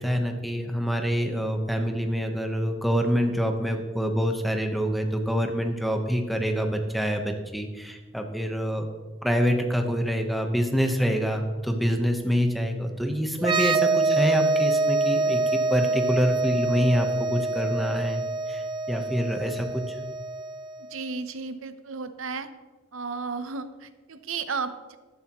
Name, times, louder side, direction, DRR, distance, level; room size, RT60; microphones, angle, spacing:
voice 1, 0.0-8.9 9.2-15.4 15.7-20.0, equal, ahead, 3 dB, 1.0 m, -26 dB
sound 1, 13.4-20.9, right 3 dB, 25° right, 0.5 m, -26 dB
voice 2, 20.8-22.5 22.9-25.0, right 4 dB, 85° right, 10 dB, 0.8 m, -34 dB
13.0 x 11.5 x 3.0 m, 1.3 s
head